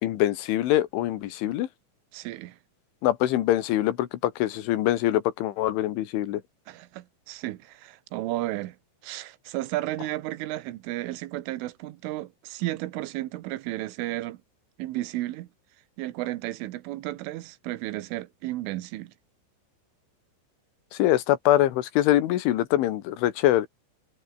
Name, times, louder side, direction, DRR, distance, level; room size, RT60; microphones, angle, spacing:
voice 1, 0.0-1.7 3.0-6.4 20.9-23.7, left 13 dB, 80° left, 4.0 m, -24 dB
voice 2, 2.1-2.6 6.7-8.8 9.0-14.4 14.8-15.5 16.0-19.1, right 16 dB, 85° right, 3.7 m, -33 dB
omnidirectional pair, 5.5 m